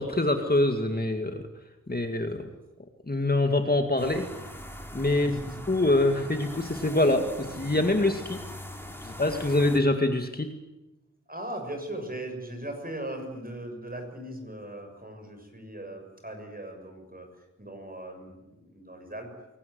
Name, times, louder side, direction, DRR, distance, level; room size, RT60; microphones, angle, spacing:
voice 1, 0.0-1.4 1.9-2.5 3.1-4.3 4.9-5.4 5.7-7.3 7.6-8.4 9.0-10.5, left 2 dB, 30° left, 5 dB, 2.1 m, -25 dB
sound 1, 4.0-9.8, left 1 dB, 5° left, 3.8 m, -42 dB
voice 2, 5.2-5.6 11.3-17.3 17.6-19.3, right 1 dB, 30° right, 4 dB, 6.9 m, -39 dB
23.0 x 18.5 x 9.6 m, 1.0 s
wide cardioid pair, 65°, 30 cm